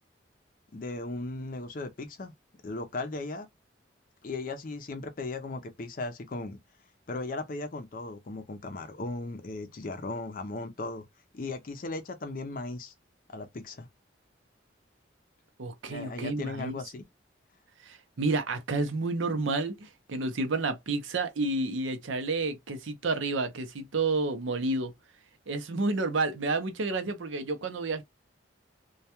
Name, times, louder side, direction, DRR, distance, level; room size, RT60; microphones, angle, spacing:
voice 1, 0.7-2.3 2.6-3.5 4.2-6.6 7.1-11.0 11.3-12.9 13.3-13.9 15.9-17.0, left 2 dB, 45° left, 0.5 m, -37 dB
voice 2, 15.6-16.8 17.8-24.9 25.5-28.0, right 3 dB, 85° right, 0.6 m, -30 dB
2.2 x 2.2 x 2.8 m
head